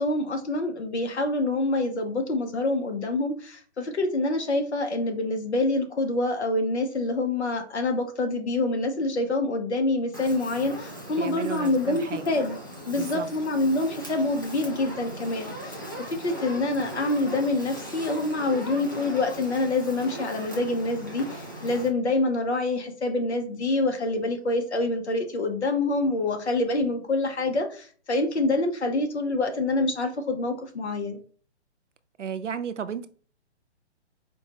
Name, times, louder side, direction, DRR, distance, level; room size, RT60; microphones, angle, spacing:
voice 1, 0.0-12.6 12.8-15.8 16.1-31.2, left 2 dB, 70° left, 6 dB, 0.9 m, -26 dB
Fire, 10.1-21.9, equal, 20° left, 0.3 m, -39 dB
voice 2, 11.2-12.3 12.9-13.3 32.2-33.1, right 7 dB, 85° right, 11 dB, 0.5 m, -33 dB
4.4 x 2.2 x 2.9 m, 0.43 s
figure-of-eight pair, 130°, 35 cm